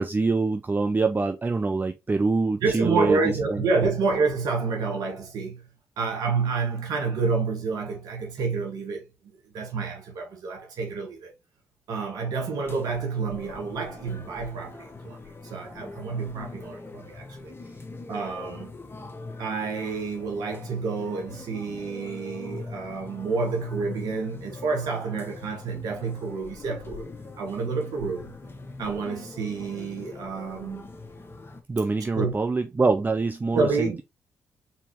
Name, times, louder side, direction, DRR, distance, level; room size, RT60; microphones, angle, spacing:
voice 1, 0.0-3.2 3.5-3.6 31.7-34.0, right 3 dB, 25° right, 0.6 m, -25 dB
voice 2, 2.6-5.6 6.0-9.0 9.5-11.3 11.9-15.2 15.4-17.5 18.1-18.7 19.4-27.1 27.4-28.3 28.8-30.8 32.1-32.4 33.5-34.0, right 4 dB, 70° right, 1.4 m, -29 dB
sound 1, 12.7-31.6, left 3 dB, 35° left, 1.1 m, -42 dB
4.2 x 4.1 x 2.9 m
hypercardioid pair, 45°, 7 cm